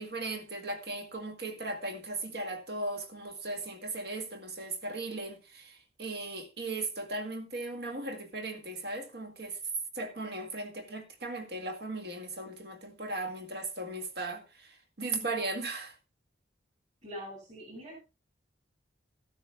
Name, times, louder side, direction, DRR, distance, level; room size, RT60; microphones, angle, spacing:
voice 1, 0.0-9.6 10.0-15.9, right 2 dB, 60° right, 2.0 m, -37 dB
voice 2, 17.0-18.0, equal, 40° right, 7.5 m, -43 dB
14.5 x 12.5 x 2.3 m
head